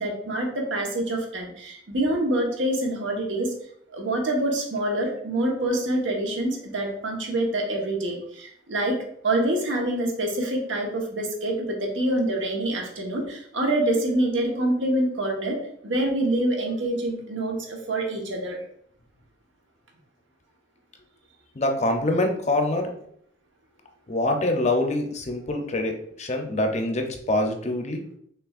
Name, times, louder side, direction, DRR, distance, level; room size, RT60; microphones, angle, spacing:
voice 1, 0.0-3.5 3.9-9.0 9.2-15.6 15.8-18.6, right 1 dB, 85° right, 0 dB, 1.1 m, -26 dB
voice 2, 21.5-23.0 24.1-28.0, left 1 dB, 35° left, 4 dB, 0.6 m, -25 dB
5.8 x 3.3 x 2.4 m, 0.66 s
head